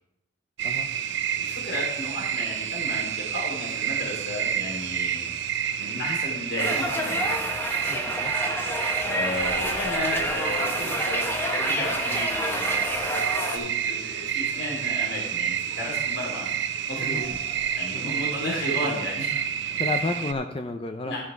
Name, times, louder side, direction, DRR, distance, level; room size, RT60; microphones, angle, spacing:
sound 1, 0.6-20.3, right 9 dB, 65° right, 0.5 m, -29 dB
voice 1, 1.4-5.3 5.8-7.4 9.0-16.5 16.9-17.4 17.8-19.4 21.0-21.2, left 1 dB, 80° left, -3 dB, 3.7 m, -34 dB
sound 2, 6.6-13.6, left 1 dB, 10° left, 1.0 m, -29 dB
voice 2, 7.9-8.3 17.0-17.2 17.9-18.1 19.8-21.2, left 3 dB, 30° left, 6 dB, 0.5 m, -32 dB
sound 3, 9.2-10.5 12.8-14.2 16.9-18.1, left 3 dB, 60° left, 1.9 m, -42 dB
12.5 x 6.0 x 4.6 m, 0.84 s
head